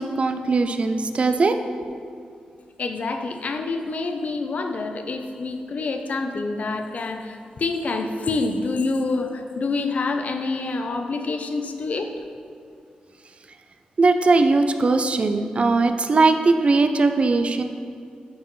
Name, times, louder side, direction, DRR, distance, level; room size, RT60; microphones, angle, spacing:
voice 1, 0.0-1.6 14.0-17.6, right 3 dB, 45° right, 7 dB, 0.4 m, -19 dB
voice 2, 2.8-12.1, left 3 dB, 55° left, 6 dB, 0.5 m, -27 dB
9.9 x 4.4 x 3.1 m, 2.3 s
cardioid pair, 80°, 3 cm